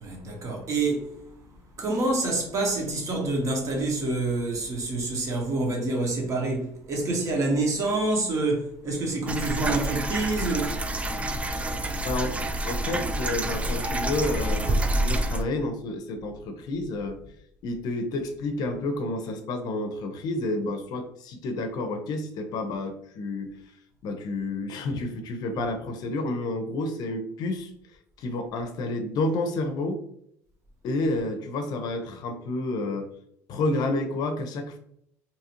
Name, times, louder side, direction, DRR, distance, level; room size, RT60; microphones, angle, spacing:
voice 1, 0.0-1.1 1.8-10.8 11.3-12.1 14.5-14.6, right 2 dB, 45° right, 1.0 m, -27 dB
sound 1, 9.3-15.4, right 1 dB, 15° right, 0.3 m, -28 dB
voice 2, 12.0-12.4 12.6-17.2 17.6-23.5 24.0-27.7 28.2-30.0 30.8-33.1 33.5-34.8, left 2 dB, 60° left, 0.5 m, -30 dB
2.8 x 2.4 x 2.8 m
supercardioid pair, 85°, 8 cm